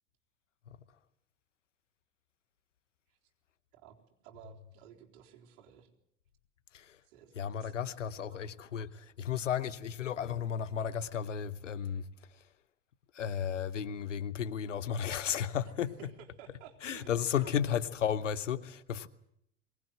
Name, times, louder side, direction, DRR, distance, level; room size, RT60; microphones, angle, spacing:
voice 1, 4.2-5.9 7.0-8.5 16.0-18.1, right 10 dB, 55° right, 4.1 m, -55 dB
voice 2, 7.4-12.4 13.1-15.9 16.8-19.1, left 8 dB, 75° left, 1.0 m, -34 dB
23.0 x 19.0 x 7.9 m
figure-of-eight pair, 65°, 37 cm